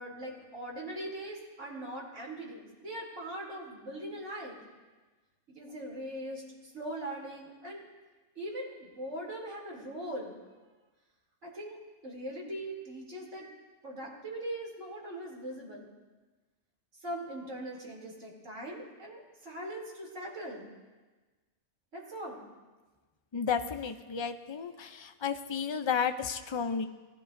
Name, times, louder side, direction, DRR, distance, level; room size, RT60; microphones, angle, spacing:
voice 1, 0.0-4.6 5.5-7.8 8.3-10.4 11.4-11.8 12.0-13.5 13.8-15.9 17.0-20.7 21.9-22.4, right 1 dB, 75° right, -3 dB, 3.4 m, -41 dB
voice 2, 23.3-26.9, left 6 dB, 35° left, 8 dB, 0.5 m, -32 dB
19.0 x 12.0 x 2.6 m, 1.3 s
omnidirectional pair, 1.3 m